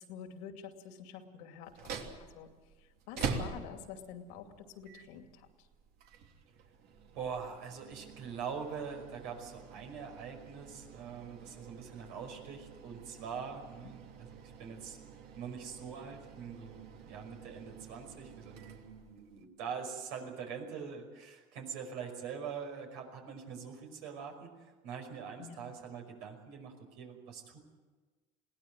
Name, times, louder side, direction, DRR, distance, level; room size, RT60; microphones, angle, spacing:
voice 1, 0.0-2.5 2.8-5.5 13.8-13.9 25.4-25.7, left 8 dB, 85° left, 6 dB, 2.6 m, -48 dB
sound 1, 1.6-19.4, right 5 dB, 65° right, 3.0 m, -46 dB
voice 2, 7.1-15.0 15.4-27.6, right 6 dB, 80° right, 3 dB, 5.5 m, -43 dB
21.5 x 17.5 x 9.0 m, 1.3 s
supercardioid pair, 105°, 18 cm